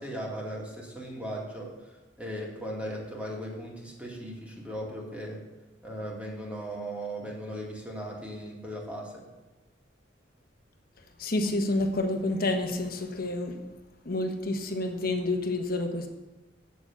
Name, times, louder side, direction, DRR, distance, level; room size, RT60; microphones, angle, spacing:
voice 1, 0.0-5.4 5.8-9.2, equal, 5° right, -3 dB, 2.4 m, -37 dB
voice 2, 11.0-13.6 14.0-16.1, left 2 dB, 50° left, 5 dB, 1.3 m, -29 dB
8.5 x 7.0 x 7.3 m, 1.2 s
head